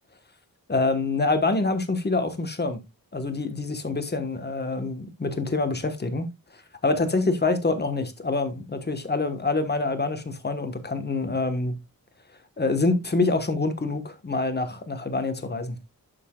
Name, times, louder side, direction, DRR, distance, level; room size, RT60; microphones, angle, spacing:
voice 1, 0.7-2.8 3.1-6.3 6.8-11.8 12.6-15.8, left 3 dB, 30° left, 1.3 m, -26 dB
11.0 x 6.9 x 2.3 m
wide cardioid pair, 150°, 35 cm